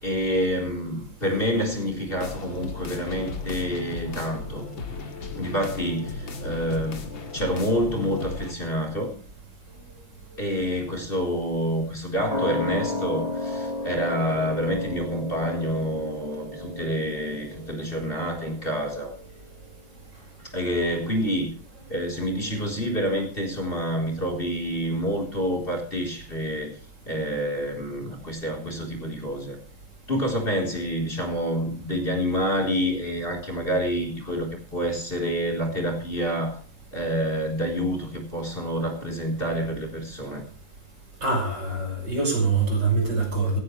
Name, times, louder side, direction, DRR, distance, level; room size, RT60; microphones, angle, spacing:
voice 1, 0.0-4.6 5.3-9.1 10.4-19.1 20.4-21.5 21.9-26.7 27.0-29.6 30.1-36.6 36.9-40.4, equal, 25° left, 3 dB, 4.3 m, -28 dB
sound 1, 2.2-8.5, left 3 dB, 75° left, 2.9 m, -35 dB
sound 2, 12.3-19.4 19.7-19.8, left 2 dB, 75° right, 6.3 m, -33 dB
voice 2, 41.2-43.6, right 3 dB, 60° right, 2 dB, 6.7 m, -24 dB
18.0 x 16.5 x 3.3 m, 0.44 s
omnidirectional pair, 2.2 m